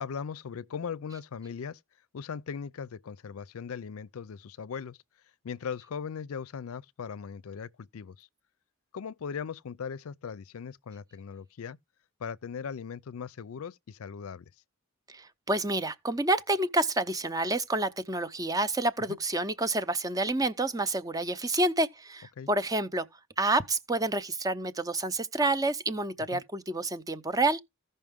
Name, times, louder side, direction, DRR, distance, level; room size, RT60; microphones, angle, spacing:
voice 1, 0.0-1.8 2.1-5.0 5.4-8.3 8.9-11.8 12.2-14.4 22.4-22.5 26.3-26.4, left 6 dB, 85° left, 0.4 m, -39 dB
voice 2, 15.1-27.6, right 2 dB, 15° right, 0.6 m, -29 dB
15.0 x 5.5 x 3.6 m
head